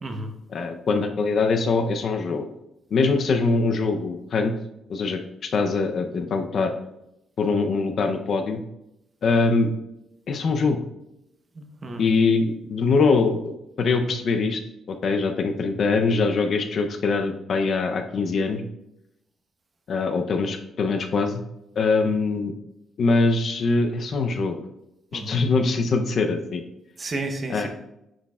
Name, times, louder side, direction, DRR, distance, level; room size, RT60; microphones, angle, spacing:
voice 1, 0.0-0.3 11.5-12.1 25.1-25.4 27.0-27.7, right 2 dB, 25° right, 4 dB, 0.9 m, -32 dB
voice 2, 0.5-2.5 2.9-4.5 4.9-6.7 7.4-8.6 9.2-9.7 10.3-10.8 12.0-14.6 14.9-18.6 19.9-21.4 21.8-22.5 23.0-24.6 25.1-26.6 27.5-27.7, left 4 dB, 45° left, 6 dB, 0.6 m, -23 dB
9.8 x 6.4 x 2.4 m, 0.86 s
cardioid pair, 155°, 0 cm